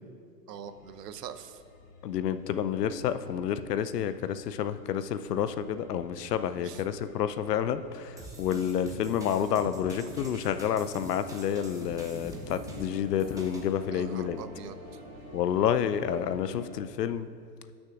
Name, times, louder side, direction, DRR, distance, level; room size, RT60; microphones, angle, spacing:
voice 1, 0.5-1.6 6.6-6.8 13.9-15.0, right 8 dB, 75° right, 11 dB, 0.7 m, -43 dB
sound 1, 0.6-16.8, left 3 dB, 45° left, 2.3 m, -52 dB
voice 2, 2.0-14.4 15.3-17.3, left 9 dB, 75° left, 12 dB, 0.6 m, -29 dB
sound 2, 8.2-13.7, right 2 dB, 5° right, 1.0 m, -45 dB
simple-orchestra-fragment, 11.3-16.4, right 3 dB, 40° right, 1.7 m, -49 dB
18.0 x 6.3 x 2.4 m, 2.3 s
hypercardioid pair, 110°, 48 cm